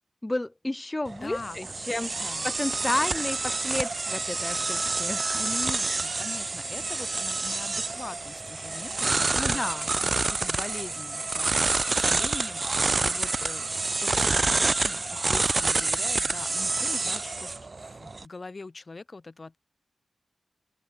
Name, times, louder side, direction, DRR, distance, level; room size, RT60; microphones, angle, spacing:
voice 1, 0.2-5.2 9.4-9.9, left 1 dB, 20° left, 1.0 m, -31 dB
voice 2, 1.1-1.7 2.2-2.5 5.3-13.7 14.0-14.5 14.8-19.6, left 3 dB, 35° left, 7.4 m, -42 dB
sound 1, 1.1-18.2, right 3 dB, 35° right, 1.4 m, -28 dB
open air
wide cardioid pair, 95°, 0 cm